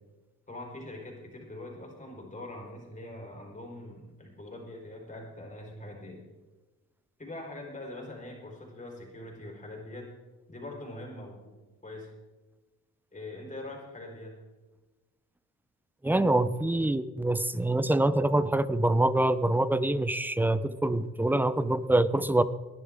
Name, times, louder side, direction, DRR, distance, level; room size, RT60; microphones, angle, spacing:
voice 1, 0.5-6.2 7.2-10.1 10.5-12.1 13.1-14.3, left 1 dB, 25° left, -1 dB, 4.4 m, -43 dB
voice 2, 16.0-22.4, right 1 dB, 5° right, 15 dB, 0.6 m, -25 dB
20.0 x 11.0 x 3.7 m, 1.2 s
cardioid pair, 90°, 30 cm